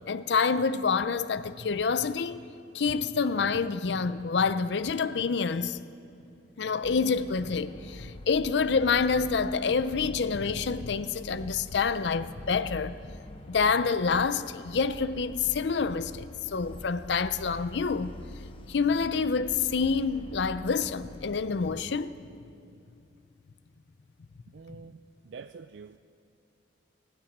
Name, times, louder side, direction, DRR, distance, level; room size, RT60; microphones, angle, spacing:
voice 1, 0.1-2.4 2.7-5.8 6.6-13.0 13.5-18.1 18.7-22.1, left 5 dB, 70° left, 0.5 m, -27 dB
sound 1, 6.8-21.6, left 1 dB, 30° left, 1.0 m, -45 dB
voice 2, 24.5-25.0 25.2-26.0, right 5 dB, 75° right, 0.4 m, -45 dB
17.5 x 8.9 x 9.3 m
head